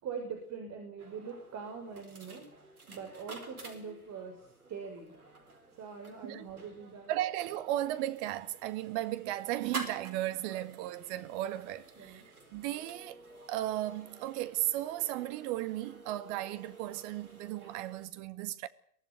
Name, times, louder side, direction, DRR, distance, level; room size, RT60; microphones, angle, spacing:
voice 1, 0.0-5.1 5.8-7.1 12.0-12.3, right 6 dB, 40° right, 6.2 m, -43 dB
sound 1, 1.0-18.1, right 3 dB, 85° right, 4.5 m, -50 dB
voice 2, 7.1-12.2 12.5-13.2 13.5-18.7, right 14 dB, 55° right, 1.9 m, -35 dB
23.5 x 16.0 x 9.6 m
figure-of-eight pair, 85°, 43 cm